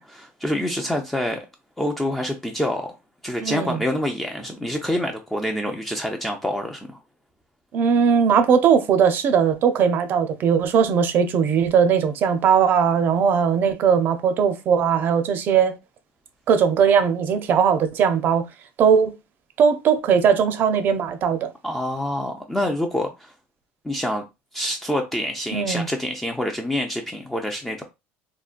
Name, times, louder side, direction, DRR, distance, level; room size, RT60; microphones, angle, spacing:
voice 1, 0.0-1.5 1.8-3.0 3.2-7.0 21.6-23.3 23.8-24.3 24.5-27.8, left 1 dB, 5° left, 0.4 m, -26 dB
voice 2, 3.4-3.8 7.7-15.8 16.5-18.5 18.8-19.1 19.6-21.5 25.5-25.9, right 7 dB, 45° right, 0.6 m, -19 dB
3.7 x 2.2 x 2.4 m
supercardioid pair, 125°, 5 cm